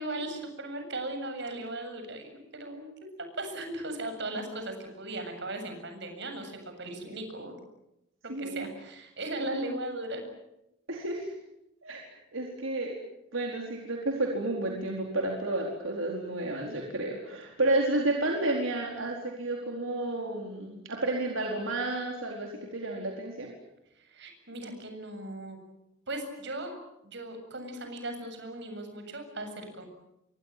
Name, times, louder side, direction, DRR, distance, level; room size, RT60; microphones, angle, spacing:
voice 1, 0.0-2.9 3.2-7.6 8.2-10.2 24.0-25.6 26.1-26.7 27.0-29.9, right 1 dB, 60° right, 6 dB, 7.5 m, -37 dB
voice 2, 8.3-8.6 10.9-11.3 11.8-13.0 13.3-23.5, right 2 dB, 75° right, 0 dB, 4.4 m, -31 dB
28.5 x 24.0 x 7.7 m, 0.86 s
head